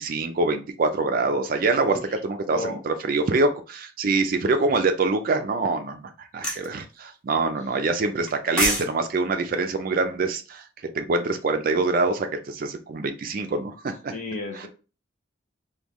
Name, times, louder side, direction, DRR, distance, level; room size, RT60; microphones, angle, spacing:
voice 1, 0.0-10.6 10.9-14.1 14.5-14.7, right 3 dB, 45° right, 7 dB, 0.4 m, -25 dB
sound 1, 6.4-6.7 8.3-8.9 9.2-9.4, equal, 5° left, 0.7 m, -24 dB
voice 2, 14.1-14.7, left 2 dB, 35° left, 3 dB, 0.8 m, -32 dB
3.0 x 2.2 x 3.5 m, 0.33 s
head